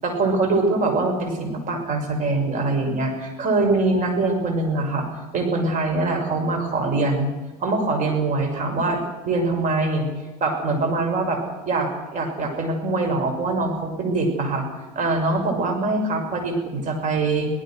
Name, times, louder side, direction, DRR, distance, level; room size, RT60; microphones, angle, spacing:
voice 1, 0.0-5.1 5.3-7.3 7.6-10.1 10.4-11.4 11.7-14.7 14.9-17.5, right 2 dB, 40° right, 4 dB, 6.5 m, -23 dB
25.5 x 18.5 x 6.5 m, 1.2 s
hypercardioid pair, 80°, 19 cm